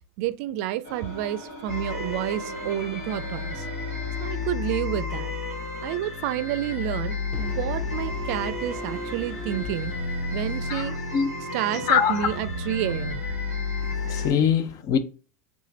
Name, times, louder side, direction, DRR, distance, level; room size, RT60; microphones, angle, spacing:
voice 1, 0.2-3.7 4.2-5.3 5.8-9.9 10.3-11.0 11.5-13.2, right 12 dB, 60° right, 0.4 m, -29 dB
sound 1, 0.8-4.6, right 1 dB, 65° left, 2.3 m, -42 dB
sound 2, 1.7-14.3, left 3 dB, 85° left, 2.4 m, -32 dB
sound 3, 7.3-11.2, equal, 10° left, 0.7 m, -39 dB
voice 2, 11.1-11.5 11.9-12.3 13.9-15.0, left 8 dB, 45° left, 0.6 m, -23 dB
3.6 x 3.2 x 3.8 m
hypercardioid pair, 90°, 8 cm